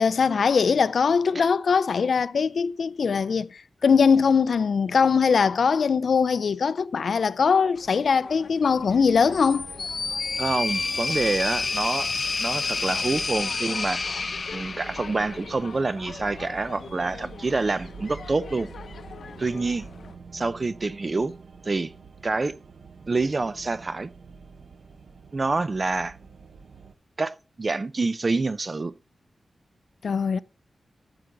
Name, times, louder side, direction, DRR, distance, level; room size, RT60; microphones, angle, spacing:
voice 1, 0.0-9.6 30.0-30.4, left 5 dB, 65° left, 0.4 m, -21 dB
sound 1, 7.7-20.2, left 6 dB, 80° left, 0.8 m, -44 dB
sound 2, 8.9-26.9, right 5 dB, 70° right, 0.9 m, -46 dB
sound 3, 9.3-15.5, left 4 dB, 45° left, 0.8 m, -29 dB
voice 2, 10.4-12.1 12.4-14.0 14.5-18.7 19.4-19.9 20.3-21.3 21.6-21.9 22.2-22.5 23.1-24.1 25.3-26.2 27.2-28.9, right 3 dB, 30° right, 0.6 m, -27 dB
14.0 x 7.7 x 3.9 m
wide cardioid pair, 155°, 0 cm